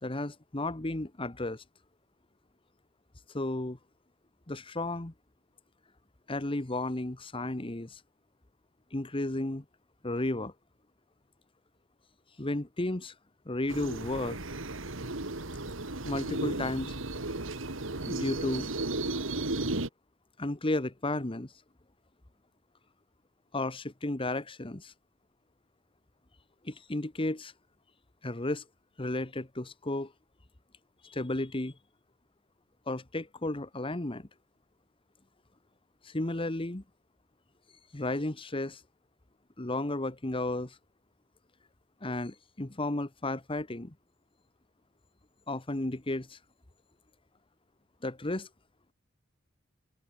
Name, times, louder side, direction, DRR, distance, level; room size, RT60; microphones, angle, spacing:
voice 1, 0.0-1.6 3.3-3.8 4.5-5.1 6.3-8.0 8.9-9.6 10.0-10.5 12.4-13.1 13.5-14.4 16.0-16.9 18.0-18.7 20.4-21.5 23.5-24.9 26.6-27.5 28.2-28.6 29.0-30.1 31.0-31.7 32.9-34.3 36.0-36.8 37.9-38.8 39.6-40.8 42.0-43.9 45.5-46.4 48.0-48.5, left 2 dB, 25° left, 1.3 m, -33 dB
sound 1, 13.7-19.9, right 2 dB, 85° right, 2.7 m, -34 dB
head